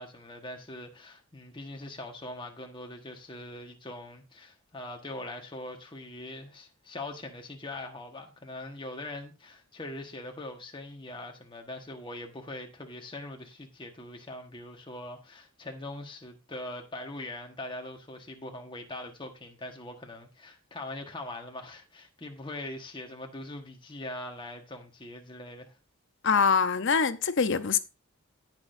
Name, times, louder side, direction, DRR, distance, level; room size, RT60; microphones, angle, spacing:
voice 1, 0.0-25.7, left 1 dB, 20° left, 1.4 m, -42 dB
voice 2, 26.2-27.8, left 5 dB, 55° left, 0.7 m, -24 dB
18.0 x 6.2 x 2.6 m
head